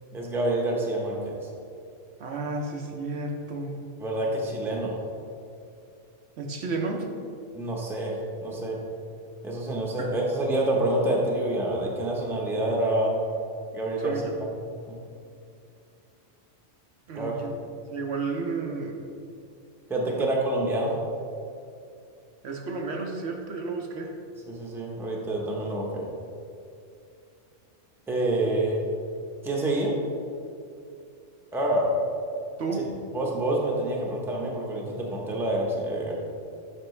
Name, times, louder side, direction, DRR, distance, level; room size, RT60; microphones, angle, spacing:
voice 1, 0.1-1.4 4.0-4.9 7.5-8.2 8.4-8.8 9.4-13.1 13.7-14.2 14.6-15.0 17.1-17.4 19.9-20.9 24.5-26.1 28.1-28.8 29.4-29.9 31.5-31.9 33.1-36.1, right 1 dB, ahead, -2 dB, 0.7 m, -27 dB
voice 2, 2.2-3.7 6.4-7.0 10.0-10.1 14.0-14.3 17.1-17.5 17.9-19.0 22.4-24.1 32.6-32.9, right 3 dB, 65° right, 2 dB, 0.9 m, -32 dB
7.5 x 5.7 x 3.1 m, 2.5 s
omnidirectional pair, 1.2 m